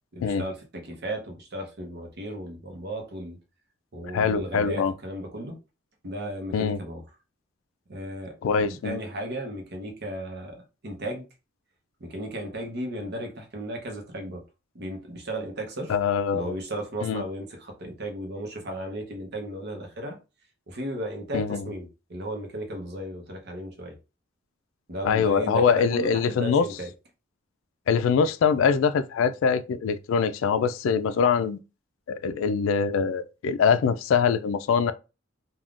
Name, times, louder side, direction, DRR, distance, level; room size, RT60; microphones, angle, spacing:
voice 1, 0.1-3.4 3.9-5.6 6.0-7.0 7.9-11.3 12.0-14.4 14.7-15.9 16.3-20.2 20.7-24.0 24.9-26.9, right 1 dB, 55° right, 0.8 m, -35 dB
voice 2, 4.1-4.9 6.5-6.8 8.4-9.0 15.9-16.5 17.0-17.2 21.3-21.7 25.0-26.6 27.9-31.6 32.1-34.9, left 6 dB, 75° left, 0.3 m, -23 dB
3.5 x 2.3 x 2.4 m
head